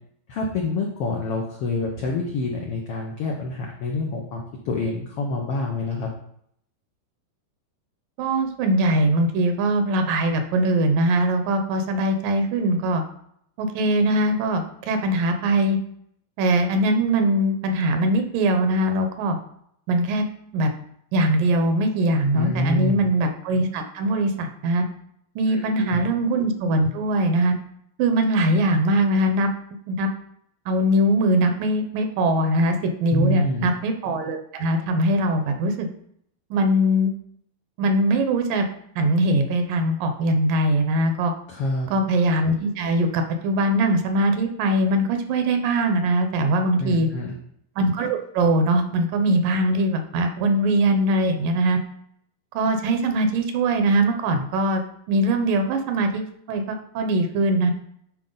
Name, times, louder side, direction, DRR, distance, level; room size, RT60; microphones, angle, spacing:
voice 1, 0.3-6.1 22.3-23.0 25.5-26.0 33.1-33.7 41.5-41.9 46.8-47.3, left 2 dB, 80° left, -1 dB, 1.3 m, -27 dB
voice 2, 8.2-13.0 13.6-15.8 16.4-19.4 19.9-20.2 20.5-20.7 21.1-24.8 25.4-27.5 28.0-29.5 29.9-30.1 30.7-35.9 36.5-37.1 37.8-38.7 39.0-41.3 41.9-47.1 47.8-51.8 52.5-54.8 55.1-57.7, right 1 dB, 75° right, 6 dB, 2.4 m, -21 dB
9.6 x 4.4 x 3.9 m, 0.69 s
omnidirectional pair, 4.0 m